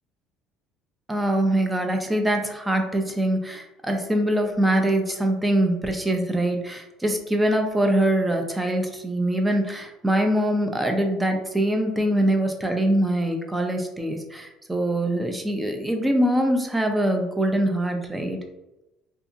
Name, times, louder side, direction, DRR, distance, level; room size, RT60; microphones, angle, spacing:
voice 1, 1.1-18.4, right 1 dB, 10° right, 4 dB, 0.5 m, -23 dB
2.6 x 2.4 x 2.5 m, 0.97 s
supercardioid pair, 95°, 0 cm